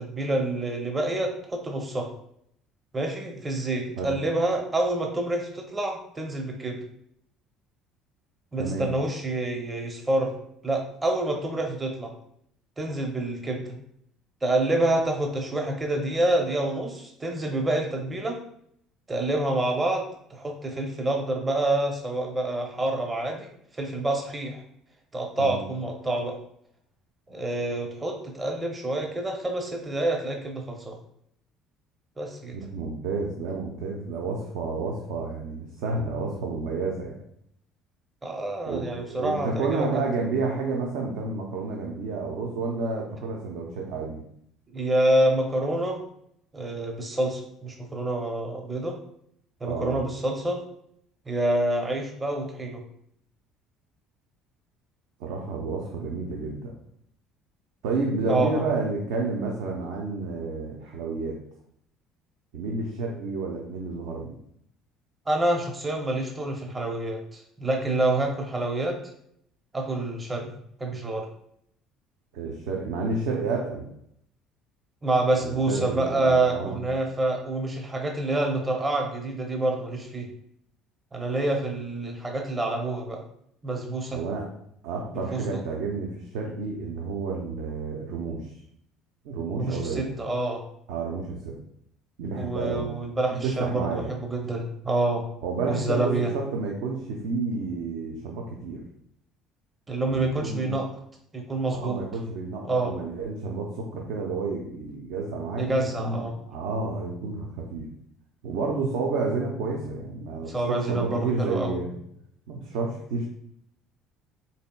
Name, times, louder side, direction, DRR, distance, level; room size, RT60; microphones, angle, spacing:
voice 1, 0.0-2.1 2.9-6.8 8.5-10.3 10.6-12.1 12.8-13.8 14.4-18.4 19.1-20.0 20.3-23.5 23.8-24.6 25.1-26.3 27.3-31.0 32.2-32.6 38.2-40.0 44.7-46.0 46.5-49.0 49.6-50.6 51.3-52.8 58.3-58.6 65.3-69.0 69.7-70.5 70.8-71.3 75.0-80.3 81.1-83.2 83.6-84.2 85.1-85.6 89.6-90.6 92.4-95.3 95.7-96.3 99.9-100.9 101.3-102.0 102.6-102.9 105.6-106.4 110.5-111.7, right 2 dB, 20° right, 2 dB, 0.6 m, -27 dB
voice 2, 8.6-8.9 25.4-25.7 32.5-37.2 38.7-44.2 49.6-50.0 55.2-56.7 57.8-61.4 62.5-64.4 72.3-73.9 75.3-76.8 84.1-84.5 84.8-88.5 89.2-90.2 90.9-91.5 92.2-92.9 93.4-94.1 95.4-98.8 100.1-100.8 101.7-107.9 108.4-112.0 112.5-113.3, right 3 dB, 85° right, -1 dB, 0.5 m, -30 dB
4.1 x 3.3 x 2.2 m, 0.71 s
cardioid pair, 105°, 0 cm